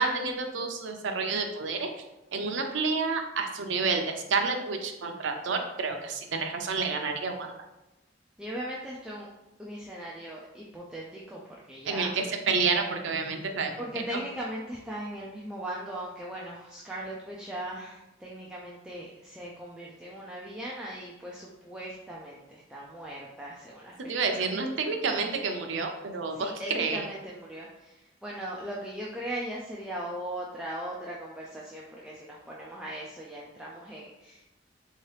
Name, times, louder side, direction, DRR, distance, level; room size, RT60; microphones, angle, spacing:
voice 1, 0.0-1.9 2.3-7.5 11.9-13.7 24.1-27.0, right 4 dB, 75° right, 4 dB, 0.5 m, -29 dB
voice 2, 8.4-9.3 9.6-12.1 13.8-24.5 26.3-34.5, right 1 dB, 5° right, -5 dB, 0.3 m, -39 dB
3.6 x 2.8 x 3.2 m, 0.95 s
head